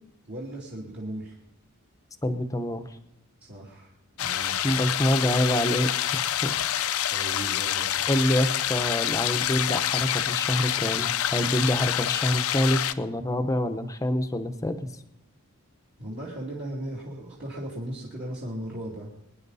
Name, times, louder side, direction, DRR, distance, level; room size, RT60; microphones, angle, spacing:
voice 1, 0.3-1.3 3.5-3.9 4.2-4.7 7.1-8.1 16.0-19.1, right 1 dB, 50° right, -6 dB, 2.7 m, -37 dB
voice 2, 2.2-2.8 4.6-6.5 6.9-7.0 8.1-14.8, left 1 dB, 15° left, 9 dB, 0.8 m, -26 dB
sound 1, 4.2-12.9, left 11 dB, 70° left, 0.6 m, -27 dB
24.0 x 10.0 x 4.1 m, 0.91 s
head